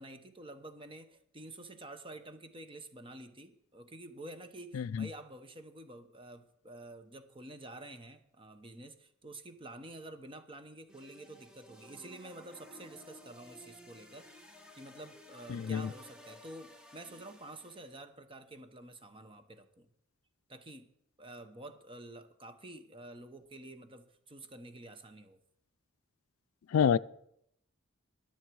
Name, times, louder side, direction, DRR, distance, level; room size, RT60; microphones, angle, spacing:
voice 1, 0.0-19.9 20.5-20.9 21.2-25.4, right 1 dB, 25° right, 1.0 m, -49 dB
voice 2, 4.7-5.1 15.5-15.9 26.7-27.0, left 7 dB, 85° left, 0.4 m, -28 dB
sound 1, 10.9-18.0, left 1 dB, 5° right, 1.4 m, -55 dB
21.0 x 7.3 x 4.7 m
head